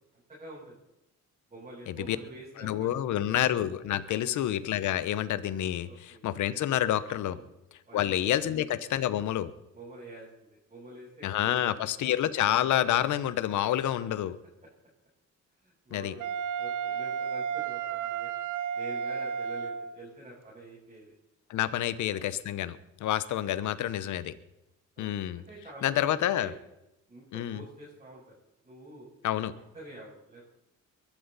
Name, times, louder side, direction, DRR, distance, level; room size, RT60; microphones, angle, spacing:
voice 1, 0.1-0.8 1.5-3.4 4.1-4.4 5.9-6.2 7.2-7.5 7.8-8.6 9.7-11.8 15.6-16.3 16.6-18.3 18.7-21.1 21.5-22.2 25.0-25.1 25.3-26.6 27.1-28.4 28.6-29.1 29.7-30.4, right 1 dB, 25° right, -7 dB, 7.4 m, -47 dB
voice 2, 2.6-7.4 7.9-9.5 11.2-14.4 15.9-16.1 21.5-24.3 25.0-25.4 25.8-26.5 27.3-27.6 29.2-29.5, left 12 dB, 75° left, 15 dB, 1.0 m, -28 dB
Wind instrument woodwind instrument, 16.2-20.0, right 7 dB, 80° right, 0.8 m, -33 dB
22.5 x 12.0 x 4.1 m, 0.90 s
cardioid pair, 90°, 30 cm